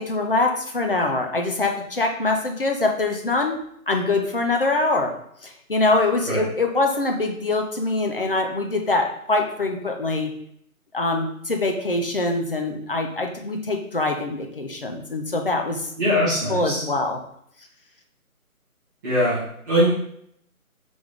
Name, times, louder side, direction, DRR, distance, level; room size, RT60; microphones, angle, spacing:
voice 1, 0.0-3.6 3.9-5.1 5.4-10.3 10.9-15.9 16.5-17.2, left 2 dB, 40° left, 3 dB, 0.5 m, -24 dB
voice 2, 16.0-16.8 19.0-19.9, equal, 15° right, -13 dB, 1.2 m, -22 dB
3.7 x 3.4 x 3.4 m, 0.71 s
figure-of-eight pair, 155°, 44 cm